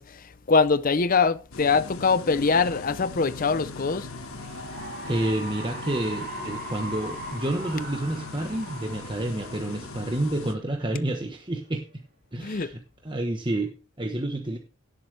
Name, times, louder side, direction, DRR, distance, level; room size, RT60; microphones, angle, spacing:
voice 1, 0.0-4.1 12.4-12.7, left 4 dB, 40° left, 0.6 m, -23 dB
sound 1, 1.5-10.5, left 3 dB, 75° left, 1.4 m, -40 dB
Cheering / Applause, 4.0-10.6, right 1 dB, 40° right, 4.6 m, -40 dB
voice 2, 5.1-11.9 12.3-14.6, right 1 dB, 20° right, 1.1 m, -29 dB
17.0 x 7.7 x 3.3 m
head